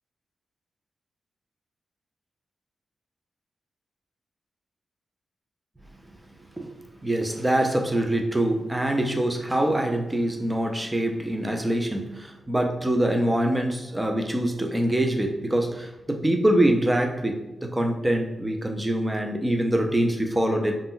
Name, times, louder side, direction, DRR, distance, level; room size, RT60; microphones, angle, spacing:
voice 1, 7.0-20.7, right 1 dB, 10° right, 3 dB, 0.4 m, -24 dB
2.5 x 2.1 x 3.6 m, 1.0 s
wide cardioid pair, 125°, 0 cm